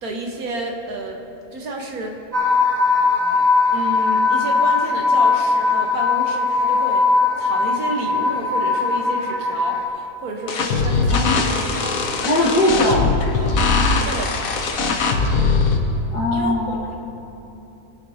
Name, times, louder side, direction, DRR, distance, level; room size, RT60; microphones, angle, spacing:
voice 1, 0.0-1.2 1.5-2.2 3.7-7.1 7.4-12.3 13.4-13.6 14.0-14.3 16.3-16.6, right 2 dB, 65° right, 1 dB, 1.7 m, -30 dB
sound 1, 2.3-9.8, left 4 dB, 25° right, 1.1 m, -19 dB
sound 2, 10.5-15.8, left 4 dB, 65° left, 1.3 m, -20 dB
voice 2, 11.1-11.6 12.2-13.2 16.1-17.0, left 1 dB, 80° left, -7 dB, 2.1 m, -21 dB
20.5 x 9.8 x 2.9 m, 2.9 s
omnidirectional pair, 1.7 m